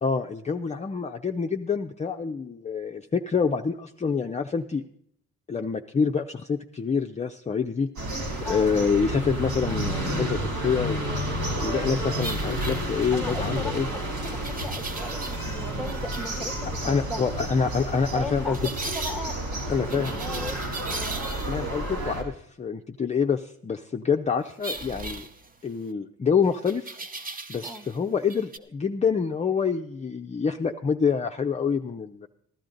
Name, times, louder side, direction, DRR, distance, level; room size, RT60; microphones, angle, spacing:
voice 1, 0.0-4.8 5.5-7.9 8.5-11.0 11.6-13.9 16.8-18.6 19.7-20.2 21.5-25.3 25.6-27.0 27.5-32.3, left 6 dB, 25° left, 3 dB, 0.5 m, -26 dB
sound 1, 8.0-22.2, right 1 dB, 80° right, 3.2 m, -31 dB
voice 2, 8.4-8.8 13.1-17.3 18.1-20.6 20.9-21.3 27.6-27.9, left 1 dB, ahead, 9 dB, 0.9 m, -38 dB
sound 2, 12.2-13.4 14.2-15.6 15.8-16.4 18.5-19.2 19.9-21.7 24.6-25.9 26.6-28.0 28.2-28.6, right 3 dB, 30° right, 0.9 m, -37 dB
15.0 x 12.0 x 3.8 m, 0.68 s
cardioid pair, 90°, 30 cm